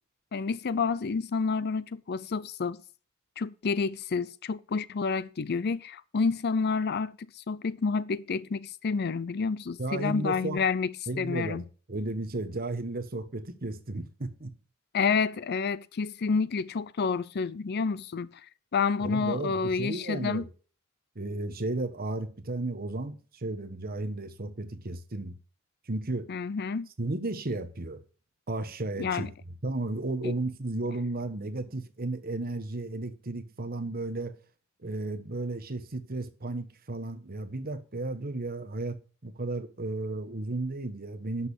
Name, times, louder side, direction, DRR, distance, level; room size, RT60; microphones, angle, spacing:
voice 1, 0.3-2.8 3.4-11.6 14.9-18.4 18.7-20.5 26.3-26.9 29.0-29.3 30.2-30.3, left 5 dB, 50° left, 0.5 m, -29 dB
voice 2, 9.8-10.6 11.1-14.5 19.0-20.5 21.1-25.4 25.9-26.3 27.0-28.0 28.5-29.3 29.6-34.3 34.8-39.0 39.2-41.5, right 2 dB, 45° right, 1.3 m, -34 dB
11.0 x 6.5 x 4.9 m
head